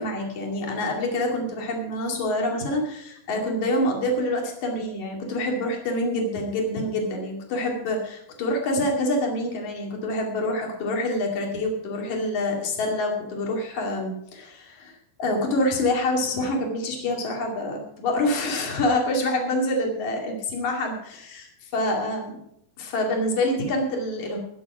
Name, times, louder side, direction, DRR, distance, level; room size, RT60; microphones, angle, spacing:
voice 1, 0.0-22.4 22.8-24.4, left 1 dB, 45° left, 0 dB, 3.3 m, -26 dB
20.0 x 7.4 x 4.9 m, 0.76 s
omnidirectional pair, 5.6 m